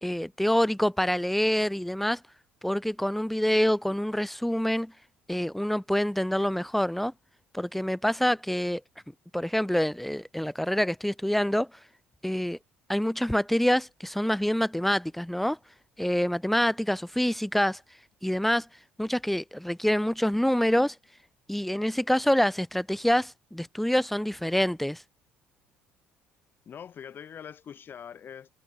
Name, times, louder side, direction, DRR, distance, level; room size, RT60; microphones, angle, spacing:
voice 1, 0.0-2.2 2.6-4.9 5.3-7.1 7.5-8.8 9.3-11.7 12.2-12.6 12.9-15.6 16.0-17.8 18.2-18.7 19.0-21.0 21.5-25.0, equal, 5° left, 2.4 m, -26 dB
voice 2, 26.7-28.5, left 8 dB, 45° left, 6.2 m, -43 dB
hypercardioid pair, 65°, 5 cm